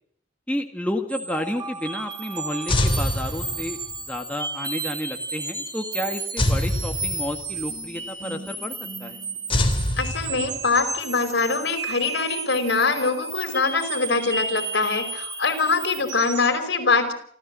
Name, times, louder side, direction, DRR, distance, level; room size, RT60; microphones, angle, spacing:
voice 1, 0.5-3.8 4.1-9.2, left 1 dB, 5° left, 3 dB, 1.9 m, -31 dB
sound 1, 1.1-16.6, right 3 dB, 20° right, 3.0 m, -33 dB
sound 2, 2.7-4.0 6.4-7.6 9.5-10.8, left 1 dB, 30° left, 3.3 m, -24 dB
voice 2, 10.0-17.1, left 4 dB, 65° left, 7 dB, 5.1 m, -23 dB
28.5 x 14.5 x 7.6 m, 0.63 s
head